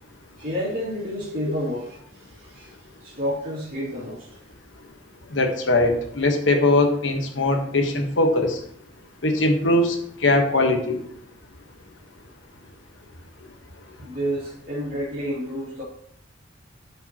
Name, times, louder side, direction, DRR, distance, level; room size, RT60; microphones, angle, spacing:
voice 1, 0.4-2.0 2.4-2.7 3.0-4.3 14.0-15.8, equal, 55° right, -8 dB, 2.5 m, -29 dB
voice 2, 5.3-8.6 9.2-10.0 10.2-11.0, left 2 dB, 80° left, 4 dB, 1.3 m, -20 dB
12.5 x 5.3 x 3.0 m, 0.65 s
head